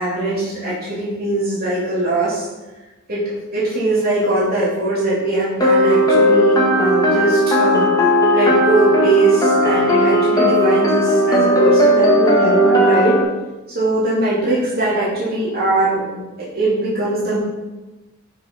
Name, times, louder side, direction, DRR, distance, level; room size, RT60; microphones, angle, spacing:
voice 1, 0.0-2.4 3.1-3.2 3.5-7.9 8.3-13.3 13.7-17.4, right 2 dB, 50° right, -9 dB, 2.9 m, -20 dB
sound 1, 5.6-13.2, equal, 20° left, 1.4 m, -15 dB
7.4 x 5.8 x 5.4 m, 1.1 s
head